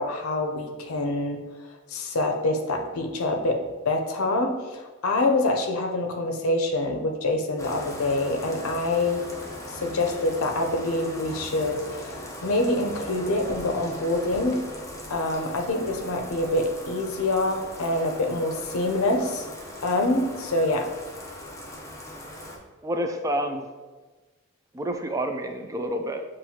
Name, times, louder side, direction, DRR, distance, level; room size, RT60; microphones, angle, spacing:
voice 1, 0.0-1.4 1.9-3.6 3.8-9.2 9.7-12.1 12.4-14.6 15.1-19.5 19.8-20.9, left 2 dB, 85° left, 3 dB, 0.6 m, -26 dB
Bathtub (filling or washing), 7.6-22.6, left 1 dB, 15° left, 0.7 m, -39 dB
voice 2, 22.8-23.7 24.7-26.3, right 1 dB, 15° right, 5 dB, 0.3 m, -28 dB
7.3 x 2.6 x 2.8 m, 1.3 s
head